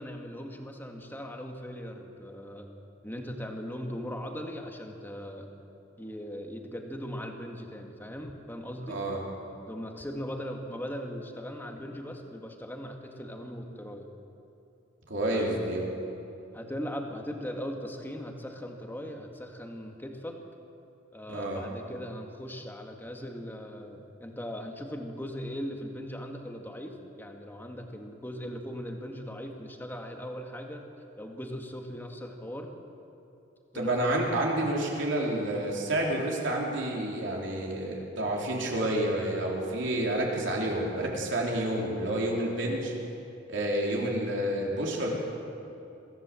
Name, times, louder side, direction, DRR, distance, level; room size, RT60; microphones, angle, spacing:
voice 1, 0.0-2.7 3.0-5.5 6.0-9.0 9.7-14.1 15.3-15.7 16.5-20.4 21.1-30.8 31.2-32.7 33.7-34.4, equal, 10° left, 3 dB, 1.9 m, -39 dB
voice 2, 8.9-9.2 15.1-15.9 21.3-21.6 33.7-42.9 43.5-45.1, right 1 dB, 65° right, -2 dB, 3.9 m, -29 dB
23.5 x 15.0 x 7.7 m, 2.8 s
head